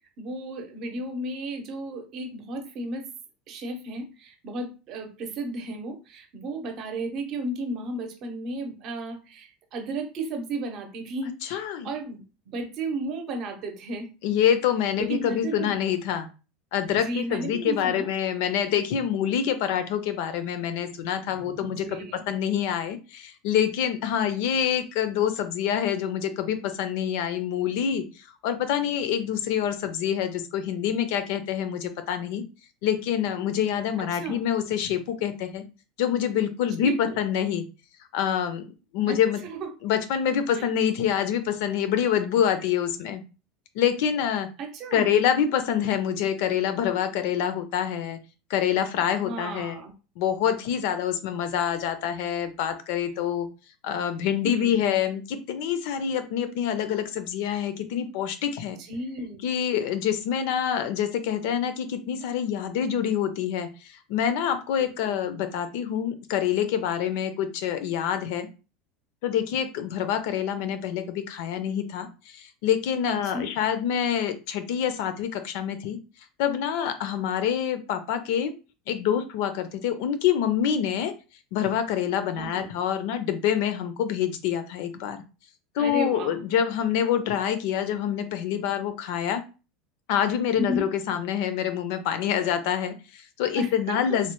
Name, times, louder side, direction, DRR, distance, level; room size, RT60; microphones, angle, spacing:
voice 1, 0.2-3.1 3.5-14.1 15.0-15.7 16.8-18.1 21.4-22.3 34.1-34.4 36.8-37.2 39.1-39.2 39.4-39.7 40.5-40.7 44.6-45.2 49.2-49.9 54.4-54.9 58.9-59.4 65.0-65.1 73.0-73.5 82.3-82.7 85.8-86.3 90.6-90.8 93.5-94.0, right 2 dB, 45° right, 6 dB, 0.7 m, -34 dB
voice 2, 11.4-11.9 14.2-16.3 16.7-28.0 28.4-32.4 32.8-35.6 36.0-37.7 38.1-39.4 39.8-43.2 43.7-44.5 44.9-48.2 48.5-49.8 50.2-53.5 53.8-58.8 59.4-63.7 64.1-68.5 69.2-76.0 76.4-78.5 78.9-81.1 81.5-85.2 85.8-89.4 90.1-94.3, left 9 dB, 65° left, 10 dB, 0.4 m, -26 dB
3.1 x 2.1 x 3.0 m, 0.32 s
supercardioid pair, 145°, 0 cm